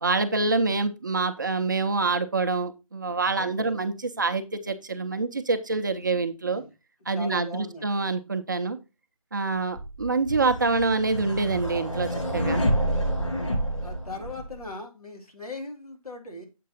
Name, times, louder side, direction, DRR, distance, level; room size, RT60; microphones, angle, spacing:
voice 1, 0.0-6.6 7.1-8.8 9.3-12.6, right 3 dB, 35° right, 8 dB, 0.5 m, -26 dB
voice 2, 3.3-3.8 6.5-6.7 7.1-8.0 13.8-16.5, left 2 dB, 85° left, 2 dB, 2.7 m, -39 dB
sound 1, 9.8-14.7, equal, 65° left, 5.3 m, -28 dB
7.5 x 5.4 x 4.0 m, 0.26 s
figure-of-eight pair, 160°, 18 cm